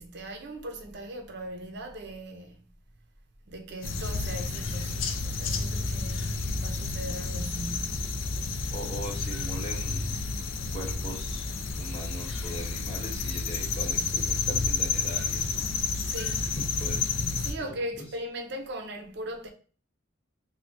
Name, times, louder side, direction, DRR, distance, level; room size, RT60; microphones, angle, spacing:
voice 1, 0.0-2.6 3.5-8.1 16.0-16.5 17.4-19.5, right 1 dB, 55° right, 0.5 m, -39 dB
sound 1, 3.8-17.5, left 4 dB, 80° left, 0.4 m, -30 dB
voice 2, 7.0-7.4 8.7-10.2 10.7-15.6 16.3-17.0 17.6-17.7 18.0-18.1, right 1 dB, 25° left, 0.9 m, -40 dB
3.3 x 2.2 x 2.5 m
head